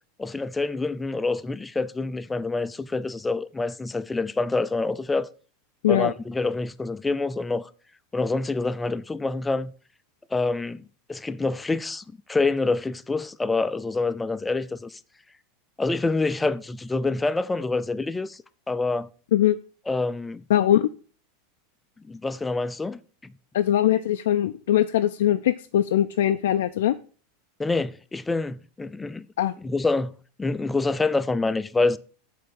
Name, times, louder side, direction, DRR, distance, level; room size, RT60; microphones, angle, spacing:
voice 1, 0.2-5.3 5.9-7.7 8.1-9.7 10.3-12.0 12.3-15.0 15.8-18.4 18.7-19.1 19.9-20.4 22.1-23.3 27.6-29.3 29.6-32.0, left 3 dB, 10° left, 0.3 m, -26 dB
voice 2, 20.5-20.9 23.5-26.9 29.4-29.5, left 11 dB, 85° left, 0.3 m, -21 dB
7.5 x 3.4 x 6.4 m
supercardioid pair, 140°, 0 cm